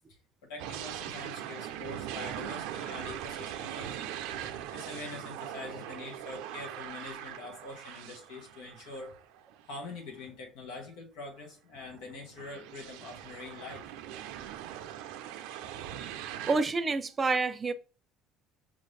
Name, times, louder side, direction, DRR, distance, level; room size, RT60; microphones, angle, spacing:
voice 1, 0.1-4.1 4.7-9.1 9.7-13.9, left 3 dB, 80° left, 1.1 m, -44 dB
sound 1, 0.6-9.7 10.2-10.3 11.7-16.6, right 11 dB, 85° right, 0.4 m, -41 dB
voice 2, 16.5-17.7, right 3 dB, 30° right, 0.5 m, -28 dB
5.3 x 2.5 x 3.2 m
supercardioid pair, 100°, 0 cm